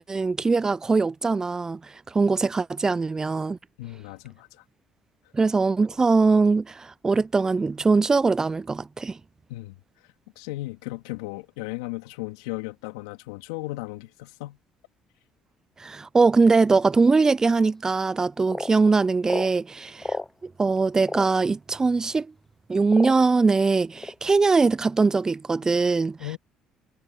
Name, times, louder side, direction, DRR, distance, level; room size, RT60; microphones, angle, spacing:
voice 1, 0.0-1.8 2.1-3.6 5.3-9.2 15.8-20.2 20.4-22.3 22.7-26.2, right 4 dB, 25° right, 0.4 m, -21 dB
voice 2, 3.8-4.6 9.5-9.8 10.4-14.6 26.2-26.4, left 20 dB, 85° left, 2.5 m, -35 dB
sound 1, 17.7-17.8 18.5-18.7 19.2-19.5 20.0-20.3 21.0-21.3 22.1-22.2 22.9-23.4 24.0-24.2, left 2 dB, 15° left, 0.6 m, -31 dB
hypercardioid pair, 60°, 2 cm